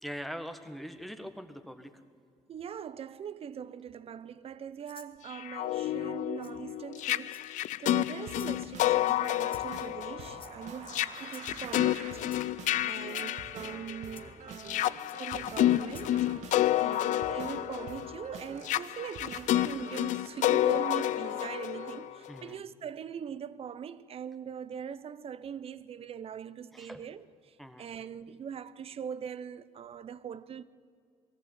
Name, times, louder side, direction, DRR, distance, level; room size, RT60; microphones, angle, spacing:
voice 1, 0.0-1.9 16.5-16.8 22.3-22.6 26.7-27.1 27.6-27.9, equal, ahead, 1.5 m, -42 dB
voice 2, 2.5-12.2 12.9-30.6, right 8 dB, 50° right, 0.8 m, -42 dB
Rattle (instrument), 4.8-5.1 6.4-6.5 7.3-7.7 8.3-8.6 9.5-9.8 10.4-10.8 11.3-11.5 12.2-12.4 13.1-13.3 14.2-14.3 15.1-15.2 15.9-16.1, left 6 dB, 45° left, 1.4 m, -52 dB
sound 1, 5.3-14.1 14.6-22.4, left 14 dB, 80° left, 0.4 m, -30 dB
sound 2, 8.3-22.1, right 5 dB, 70° right, 1.8 m, -48 dB
20.5 x 14.5 x 9.0 m
cardioid pair, 105°, 13 cm